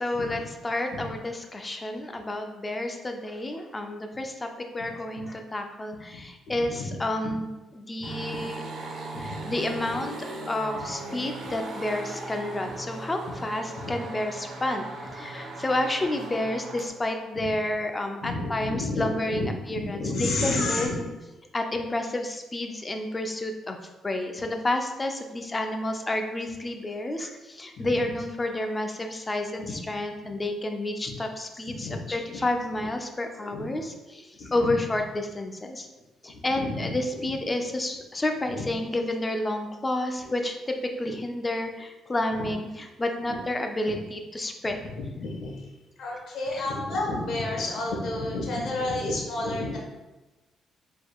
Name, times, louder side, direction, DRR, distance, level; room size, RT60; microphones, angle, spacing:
voice 1, 0.0-4.5 4.7-7.5 7.7-8.6 9.2-10.2 10.5-21.0 21.5-23.8 24.0-35.9 36.2-44.8 46.5-46.6, left 1 dB, 25° left, 5 dB, 0.5 m, -30 dB
voice 2, 6.5-6.9 7.2-7.3 8.0-8.1 9.1-9.2 18.2-21.0 27.8-27.9 29.7-29.8 31.8-32.0 32.3-32.4 33.4-33.8 34.6-34.7 36.6-36.9 38.5-38.6 42.4-42.5 44.9-45.5 46.0-49.8, left 2 dB, 70° left, -2 dB, 1.2 m, -30 dB
sound 1, 8.0-16.9, right 2 dB, 60° right, 0.9 m, -38 dB
4.9 x 3.7 x 2.3 m, 1.1 s
cardioid pair, 90°, 0 cm